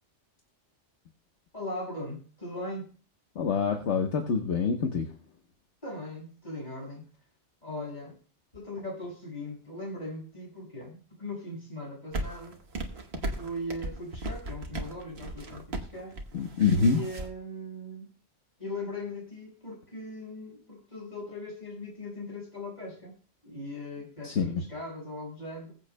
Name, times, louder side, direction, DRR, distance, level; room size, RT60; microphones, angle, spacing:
voice 1, 1.5-2.9 5.8-7.0 7.6-8.2 8.5-12.6 13.3-16.1 16.7-18.1 18.6-23.1 23.4-25.7, left 1 dB, 35° left, -2 dB, 5.8 m, -39 dB
voice 2, 3.3-5.1 16.3-17.0 24.2-24.6, left 5 dB, 70° left, 3 dB, 1.4 m, -26 dB
sound 1, 12.1-17.3, right 1 dB, 60° right, 1.5 m, -36 dB
20.5 x 7.7 x 2.2 m, 0.39 s
omnidirectional pair, 1.2 m